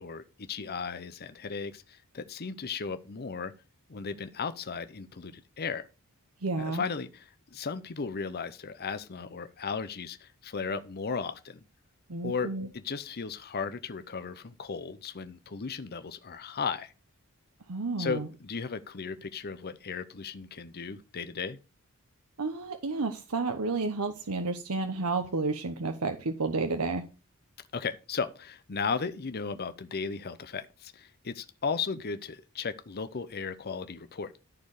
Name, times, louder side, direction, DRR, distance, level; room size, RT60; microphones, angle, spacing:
voice 1, 0.0-3.5 3.9-5.9 6.6-11.6 12.2-16.9 18.0-21.6 27.7-34.4, left 5 dB, 45° left, 0.7 m, -35 dB
voice 2, 6.4-6.8 12.1-12.7 17.7-18.3 22.4-27.0, right 3 dB, 80° right, 1.0 m, -31 dB
13.5 x 4.6 x 4.9 m
head